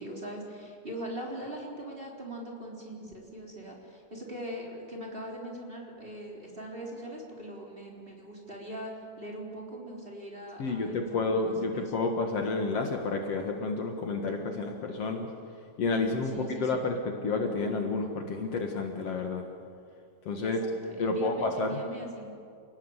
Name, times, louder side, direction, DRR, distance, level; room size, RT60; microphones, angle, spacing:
voice 1, 0.0-8.9 9.2-11.9 16.2-16.9 20.4-22.3, right 1 dB, 20° right, -2 dB, 4.1 m, -41 dB
voice 2, 10.6-15.3 15.8-19.5 20.3-20.6 21.0-21.8, left 3 dB, 60° left, 3 dB, 2.6 m, -30 dB
28.5 x 18.5 x 8.2 m, 2.4 s
omnidirectional pair, 3.3 m